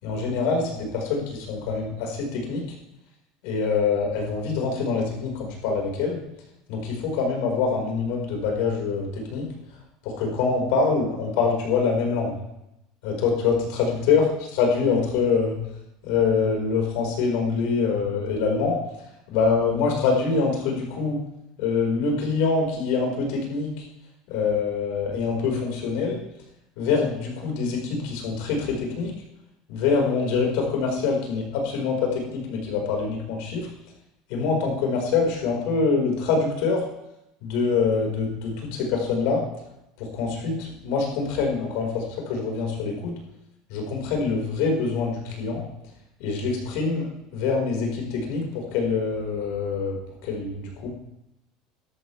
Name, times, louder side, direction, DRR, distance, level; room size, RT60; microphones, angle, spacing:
voice 1, 0.0-2.6 3.4-6.2 6.7-9.5 10.0-12.3 13.0-14.2 14.5-15.6 16.0-18.8 19.3-21.2 21.6-23.8 24.3-26.2 26.8-29.1 29.7-33.7 34.3-36.8 37.4-39.4 40.0-43.1 43.7-45.6 46.2-50.9, left 5 dB, 75° left, 0 dB, 4.8 m, -25 dB
13.0 x 11.5 x 3.4 m, 0.86 s
supercardioid pair, 135°, 0 cm